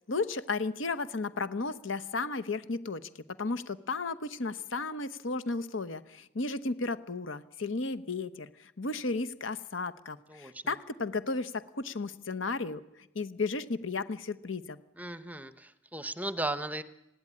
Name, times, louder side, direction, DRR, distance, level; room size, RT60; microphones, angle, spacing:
voice 1, 0.1-3.1 3.4-12.8 13.1-14.8, left 3 dB, 80° left, 13 dB, 1.1 m, -34 dB
voice 2, 10.3-10.6 15.0-16.8, right 1 dB, 10° right, 13 dB, 0.9 m, -36 dB
19.5 x 16.0 x 9.9 m, 0.86 s
head